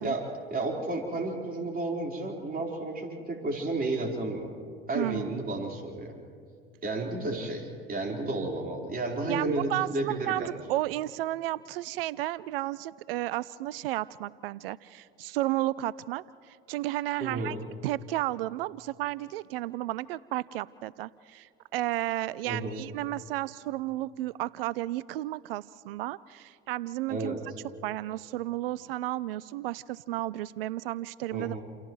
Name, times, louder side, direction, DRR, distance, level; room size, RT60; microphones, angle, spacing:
voice 1, 0.0-4.5 4.9-6.1 6.8-10.6 17.2-17.6 22.4-22.8 27.1-27.4 31.3-31.6, right 2 dB, 30° right, -1 dB, 4.5 m, -32 dB
voice 2, 4.9-5.4 9.3-17.6 17.8-27.5 27.8-31.6, right 16 dB, 70° right, 20 dB, 0.5 m, -33 dB
29.5 x 28.5 x 3.2 m, 2.2 s
figure-of-eight pair, 65°, 30 cm